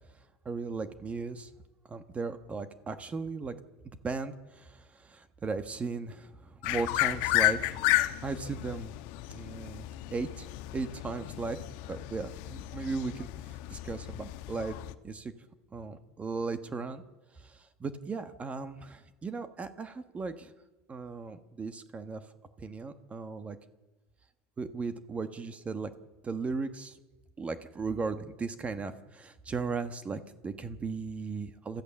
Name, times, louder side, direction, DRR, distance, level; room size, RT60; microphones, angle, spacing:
voice 1, 0.4-1.5 1.9-3.6 3.8-8.9 9.3-10.5 10.7-11.6 11.9-14.8 15.0-15.3 15.7-17.0 17.3-20.5 20.9-22.2 22.6-23.6 24.6-25.9 26.2-27.0 27.4-31.8, right 4 dB, 20° right, 10 dB, 1.2 m, -37 dB
sound 1, 6.6-14.9, left 18 dB, 70° left, 1.1 m, -32 dB
27.0 x 15.0 x 7.1 m, 1.1 s
supercardioid pair, 120°, 6 cm